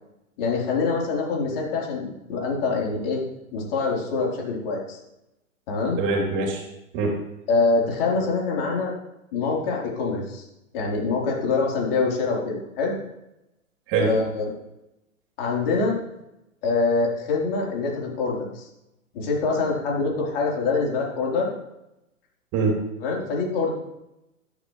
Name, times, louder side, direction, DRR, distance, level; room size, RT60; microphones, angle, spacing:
voice 1, 0.4-3.2 3.5-5.0 5.7-6.0 7.5-8.9 9.3-10.4 10.7-13.0 14.0-14.5 15.4-16.0 16.6-18.7 19.1-21.5 23.0-23.7, left 4 dB, 40° left, -2 dB, 4.2 m, -25 dB
voice 2, 6.0-6.6 6.9-7.2 13.9-14.1 22.5-22.8, right 3 dB, 30° right, 0 dB, 3.4 m, -23 dB
12.5 x 12.0 x 3.3 m, 0.89 s
figure-of-eight pair, 115°, 42 cm